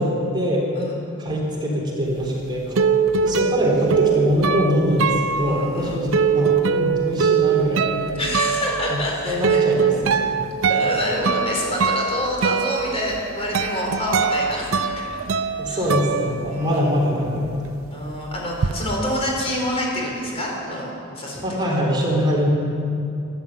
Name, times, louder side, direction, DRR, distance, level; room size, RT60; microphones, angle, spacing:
voice 1, 0.0-0.7 1.2-2.8 3.2-8.0 8.9-10.3 15.6-17.5 21.4-22.5, equal, 20° right, -3 dB, 3.7 m, -23 dB
sound 1, 2.2-17.0 17.3-18.7, right 6 dB, 80° right, 0.6 m, -22 dB
voice 2, 5.5-6.0 8.2-9.6 10.1-10.3 10.7-15.2 15.7-15.9 16.5-17.0 17.9-21.4, left 1 dB, 30° left, -2 dB, 4.0 m, -27 dB
13.0 x 12.0 x 8.5 m, 2.6 s
head